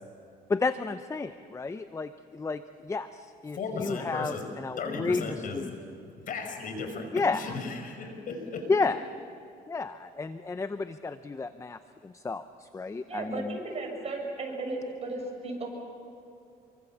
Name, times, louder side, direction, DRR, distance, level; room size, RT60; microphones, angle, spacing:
voice 1, 0.5-5.7 7.1-7.5 8.7-9.0 9.7-13.6, left 4 dB, 15° left, 11 dB, 0.7 m, -32 dB
voice 2, 3.5-4.4 4.8-5.8 6.3-8.7, left 4 dB, 55° left, 5 dB, 5.3 m, -35 dB
voice 3, 13.1-15.7, right 2 dB, 40° right, 1 dB, 7.0 m, -35 dB
27.5 x 24.0 x 7.2 m, 2.6 s
cardioid pair, 110°, 17 cm